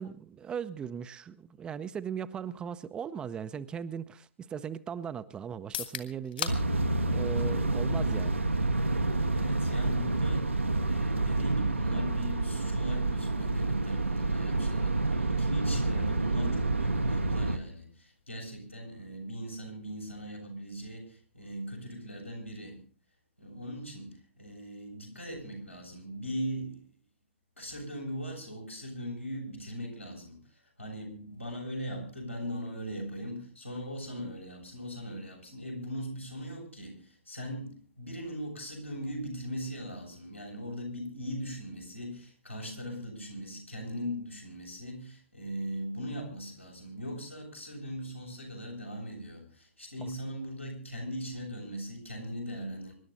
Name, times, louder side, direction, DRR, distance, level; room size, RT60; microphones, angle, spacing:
voice 1, 0.0-6.7 7.0-8.4 50.0-50.1, right 7 dB, 15° right, 0.6 m, -38 dB
sound 1, 5.6-19.4, left 8 dB, 50° left, 2.4 m, -47 dB
sound 2, 6.5-17.6, right 2 dB, 80° right, 1.3 m, -28 dB
voice 2, 9.0-22.8 23.4-26.9 27.6-52.9, equal, 90° left, 8.0 m, -39 dB
25.0 x 12.0 x 4.1 m
figure-of-eight pair, 120°, 7 cm